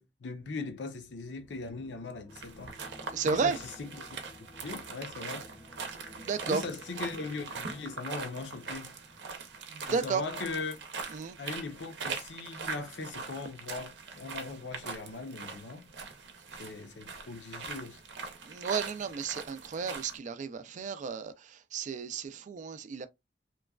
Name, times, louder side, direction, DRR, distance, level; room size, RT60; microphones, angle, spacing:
voice 1, 0.0-2.8 3.2-4.2 4.6-5.5 6.5-9.0 9.9-10.8 11.4-15.9 16.6-18.0, left 3 dB, 80° left, 0.6 m, -40 dB
sound 1, 0.9-10.3 10.6-10.9, left 2 dB, 25° left, 0.4 m, -54 dB
sound 2, 2.3-20.2, right 4 dB, 80° right, 0.7 m, -42 dB
voice 2, 3.1-3.6 6.1-6.6 9.7-10.2 11.1-11.4 18.4-23.1, right 5 dB, 45° right, 0.3 m, -33 dB
3.0 x 2.2 x 2.3 m
head